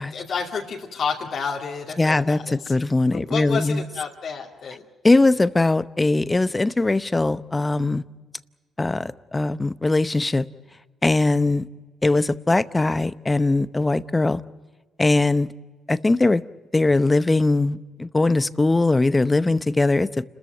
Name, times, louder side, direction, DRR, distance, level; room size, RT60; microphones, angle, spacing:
voice 1, 0.0-2.8 3.1-4.8, left 5 dB, 60° left, 0 dB, 2.5 m, -30 dB
voice 2, 2.0-3.8 5.0-8.0 8.8-10.5 11.0-11.7 12.0-14.4 15.0-15.5 15.9-16.4 16.7-20.2, left 2 dB, 20° left, 15 dB, 0.7 m, -20 dB
29.5 x 14.0 x 9.0 m, 1.3 s
cardioid pair, 90°, 0 cm